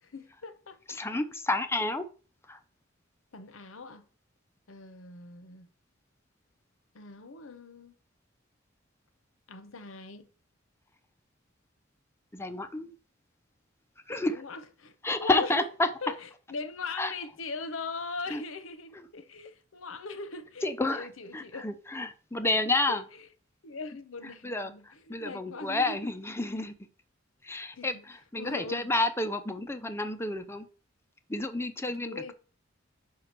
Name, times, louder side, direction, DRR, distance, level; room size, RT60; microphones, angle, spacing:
voice 1, 0.0-1.2 3.3-4.0 4.7-5.7 6.9-7.9 9.5-10.3 14.3-15.7 16.0-21.6 22.9-23.3 23.6-26.0 27.7-28.0 28.4-28.9 32.0-32.3, left 4 dB, 75° left, 0.9 m, -41 dB
voice 2, 0.9-2.1 2.5-2.6 12.3-12.9 14.1-14.4 15.0-15.9 17.0-17.1 18.3-18.4 20.6-21.1 21.3-23.0 24.4-26.9 27.4-30.7 31.3-32.3, left 2 dB, 10° left, 0.6 m, -30 dB
4.9 x 4.7 x 5.9 m
head